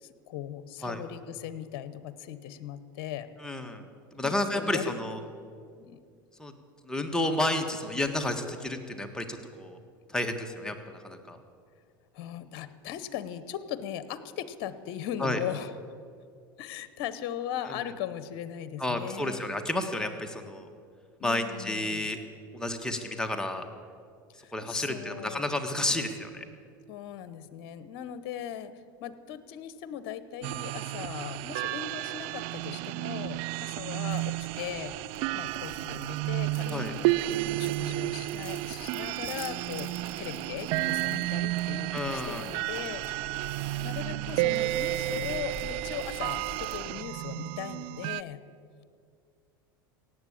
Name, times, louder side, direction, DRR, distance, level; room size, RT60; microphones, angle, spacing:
voice 1, 0.0-3.3 4.2-4.9 5.8-6.0 12.1-15.7 16.6-19.4 21.2-22.1 24.4-25.5 26.9-37.1 37.5-48.4, left 10 dB, 60° left, 14 dB, 0.9 m, -39 dB
voice 2, 3.4-3.8 4.1-5.2 6.4-6.5 6.8-9.8 10.1-11.4 15.2-15.4 17.7-17.8 18.8-20.7 21.2-22.2 22.5-23.6 24.5-26.4 36.7-36.9 41.9-42.5, left 1 dB, 5° left, 4 dB, 1.5 m, -31 dB
sound 1, 30.4-48.2, right 18 dB, 55° right, 0.4 m, -32 dB
sound 2, 34.1-46.8, equal, 20° right, 2.4 m, -48 dB
17.0 x 7.9 x 8.6 m, 2.2 s
hypercardioid pair, 90°, 12 cm